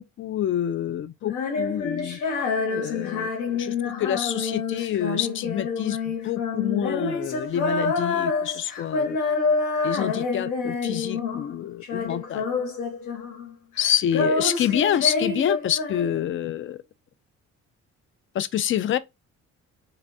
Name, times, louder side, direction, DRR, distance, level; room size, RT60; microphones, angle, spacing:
voice 1, 0.0-2.2 2.7-9.2 9.8-12.5 13.8-16.8 18.3-19.0, left 10 dB, 45° left, 0.4 m, -27 dB
Female singing, 1.2-11.5 11.8-13.5 13.8-16.4, left 4 dB, 85° left, 1.3 m, -27 dB
3.4 x 3.2 x 2.5 m
cardioid pair, 90°, 30 cm